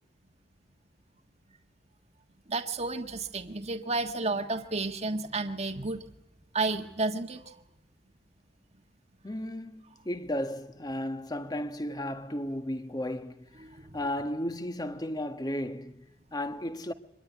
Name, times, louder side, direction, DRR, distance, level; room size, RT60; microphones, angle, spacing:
voice 1, 2.5-6.0 6.5-7.5 13.6-13.9, right 3 dB, 35° right, 1.6 m, -32 dB
voice 2, 9.2-13.6 13.9-16.9, left 1 dB, 20° left, 1.5 m, -34 dB
25.0 x 22.0 x 9.5 m
head